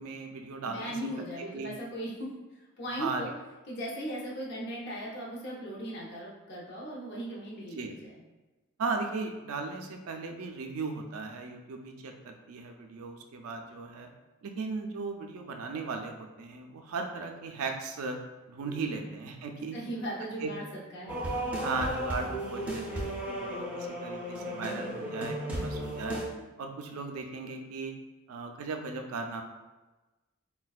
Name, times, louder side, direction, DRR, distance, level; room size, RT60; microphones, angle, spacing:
voice 1, 0.0-1.0 1.4-1.7 3.0-3.2 7.8-8.1 8.8-14.1 14.4-18.2 18.5-19.8 20.2-20.5 21.6-26.2 26.6-27.9 28.3-29.4, right 4 dB, 75° right, 4 dB, 0.4 m, -37 dB
voice 2, 0.6-2.3 2.8-3.3 3.7-8.1 18.6-19.1 19.7-21.2, equal, 50° left, -4 dB, 0.6 m, -38 dB
sound 1, 21.1-26.2, right 1 dB, 5° right, 0.4 m, -34 dB
4.1 x 2.2 x 2.3 m, 1.2 s
head